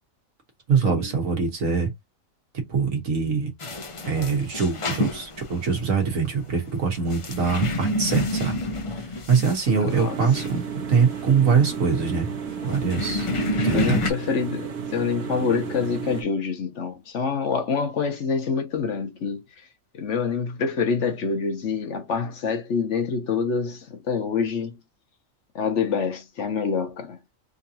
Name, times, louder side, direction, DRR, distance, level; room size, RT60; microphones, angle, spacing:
voice 1, 0.7-1.9 2.7-3.5 4.0-8.6 9.0-10.6 10.9-12.3 12.6-13.3 13.6-14.0, right 5 dB, 70° right, 1.6 m, -23 dB
sound 1, 3.6-14.1, left 1 dB, 45° left, 0.4 m, -29 dB
voice 2, 9.7-10.2 13.7-19.7 19.9-24.8 25.5-27.2, left 5 dB, 60° left, 1.1 m, -26 dB
sound 2, 9.9-16.2, right 6 dB, 90° right, 1.4 m, -33 dB
3.8 x 2.8 x 2.7 m
omnidirectional pair, 1.4 m